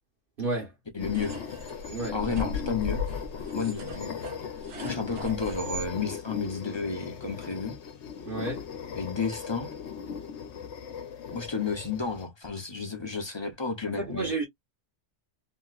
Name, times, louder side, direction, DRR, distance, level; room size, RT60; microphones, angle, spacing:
voice 1, 0.4-0.7 1.9-2.2 8.2-8.6 14.0-14.4, right 3 dB, 50° right, 1.3 m, -31 dB
voice 2, 0.9-1.4 2.1-3.0 3.5-4.5 4.8-7.8 9.0-9.7 11.3-14.3, left 5 dB, 25° left, 0.7 m, -32 dB
sound 1, 1.0-12.3, left 7 dB, 70° left, 1.0 m, -38 dB
sound 2, 1.0-5.9, left 2 dB, 70° right, 1.3 m, -38 dB
3.0 x 2.9 x 2.4 m
omnidirectional pair, 1.3 m